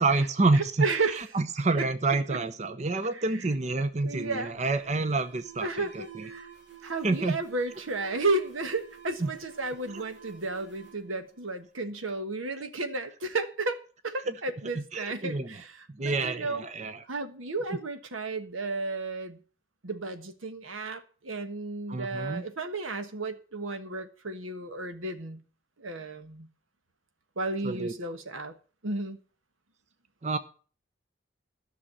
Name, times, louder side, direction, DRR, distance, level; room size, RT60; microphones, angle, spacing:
voice 1, 0.0-0.9 1.1-6.3 7.0-7.4 9.2-9.3 14.3-14.4 14.8-15.5 16.0-17.0 21.9-22.4 27.6-27.9 30.2-30.4, right 3 dB, 35° right, 0.6 m, -28 dB
voice 2, 0.5-1.2 1.8-1.9 2.3-2.4 3.1-3.5 4.0-4.5 5.6-6.5 6.8-16.7 17.1-19.4 19.8-25.4 25.8-26.5 27.4-28.5 28.8-29.2, right 3 dB, 90° right, 1.3 m, -33 dB
Alarm, 3.5-12.1, right 7 dB, 60° right, 2.9 m, -51 dB
12.5 x 6.3 x 7.3 m
head